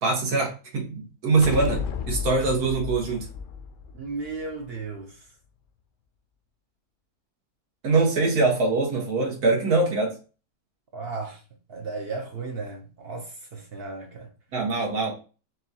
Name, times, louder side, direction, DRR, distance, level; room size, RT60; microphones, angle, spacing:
voice 1, 0.0-1.8 2.1-3.2 7.8-10.1 14.5-15.1, right 3 dB, 90° right, 1.8 m, -23 dB
sound 1, 1.4-4.8, left 6 dB, 70° left, 0.9 m, -33 dB
voice 2, 3.9-5.3 10.9-11.4 11.7-14.3, right 3 dB, 60° right, 0.7 m, -35 dB
5.9 x 2.3 x 2.8 m
omnidirectional pair, 1.6 m